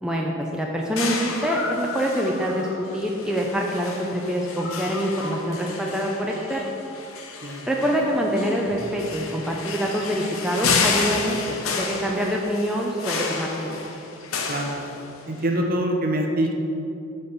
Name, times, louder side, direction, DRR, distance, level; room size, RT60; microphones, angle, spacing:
voice 1, 0.0-2.7 2.9-6.6 7.7-13.8, equal, 5° right, -2 dB, 0.4 m, -25 dB
sound 1, 1.0-15.4, left 4 dB, 80° left, 0.8 m, -31 dB
voice 2, 14.5-14.8 15.3-16.5, right 1 dB, 40° right, 2 dB, 0.7 m, -24 dB
6.9 x 4.4 x 6.7 m, 2.9 s
head